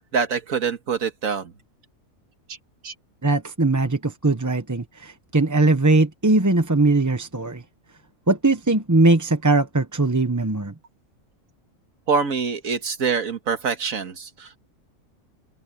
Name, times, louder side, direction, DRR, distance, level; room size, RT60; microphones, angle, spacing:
voice 1, 0.0-1.5 2.8-2.9 12.1-14.6, right 5 dB, 85° right, 2.0 m, -25 dB
voice 2, 3.2-7.6 8.3-10.7, right 2 dB, 15° right, 0.8 m, -20 dB
open air
omnidirectional pair, 1.4 m